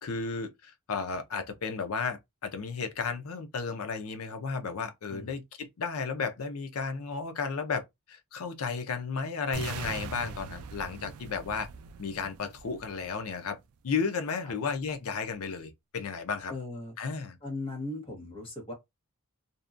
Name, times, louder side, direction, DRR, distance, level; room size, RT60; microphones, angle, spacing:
voice 1, 0.0-11.7 12.0-13.6 13.8-16.5 17.0-17.4, left 5 dB, 70° left, 0.5 m, -33 dB
sound 1, 9.5-13.5, right 5 dB, 75° right, 0.3 m, -41 dB
voice 2, 16.5-16.9 17.4-18.7, left 2 dB, 25° left, 0.9 m, -38 dB
2.6 x 2.1 x 2.4 m
head